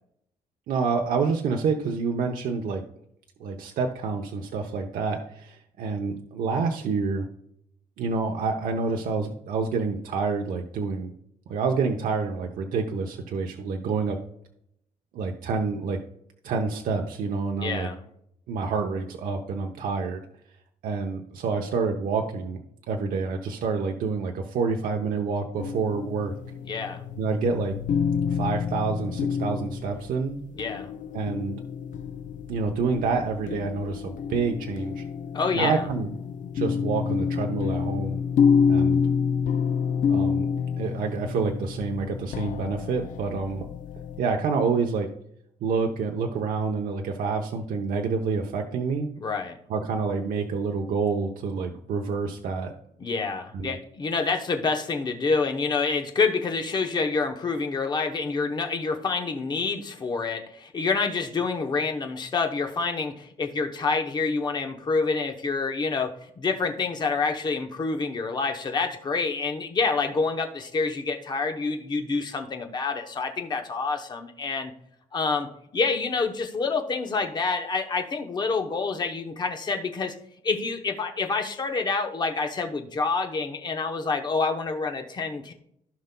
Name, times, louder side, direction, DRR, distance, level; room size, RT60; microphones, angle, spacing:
voice 1, 0.7-2.8 3.4-7.3 8.0-11.1 11.5-14.2 15.1-16.0 16.4-17.9 18.5-20.2 20.8-22.6 22.9-26.3 27.2-27.8 28.3-30.4 31.1-31.6 32.5-35.0 35.5-36.1 36.5-38.2 38.7-39.0 40.1-40.5 40.8-43.6 44.2-45.1 45.6-49.1 49.7-52.7 53.5-53.8, right 4 dB, 70° right, 2 dB, 0.8 m, -28 dB
voice 2, 17.6-18.0 26.6-27.0 30.6-30.9 35.3-35.9 49.2-49.6 53.0-74.7 75.1-80.1 80.4-85.5, left 4 dB, 30° left, 5 dB, 0.8 m, -27 dB
sound 1, 25.6-44.2, left 6 dB, 60° left, 0.5 m, -28 dB
15.5 x 5.4 x 2.2 m, 0.73 s
cardioid pair, 170°, 15 cm